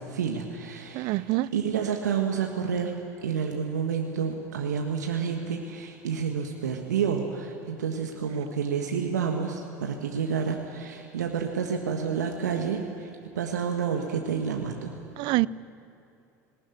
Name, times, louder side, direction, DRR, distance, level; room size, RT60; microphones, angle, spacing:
voice 1, 0.0-1.2 1.5-2.9 3.2-15.0, right 6 dB, 85° right, 1.5 m, -29 dB
voice 2, 0.9-1.5 15.2-15.5, right 21 dB, 55° right, 0.5 m, -25 dB
19.5 x 19.0 x 9.7 m
hypercardioid pair, 80°, 9 cm